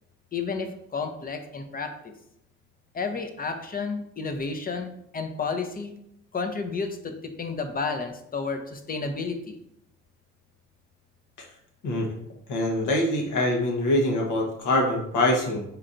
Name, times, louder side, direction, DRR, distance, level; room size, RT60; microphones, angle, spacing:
voice 1, 0.3-2.1 2.9-5.9 6.3-9.6, left 4 dB, 30° left, 6 dB, 0.6 m, -31 dB
voice 2, 12.5-15.6, left 1 dB, 80° left, 1 dB, 1.1 m, -24 dB
4.4 x 4.0 x 2.5 m, 0.76 s
cardioid pair, 90°, 30 cm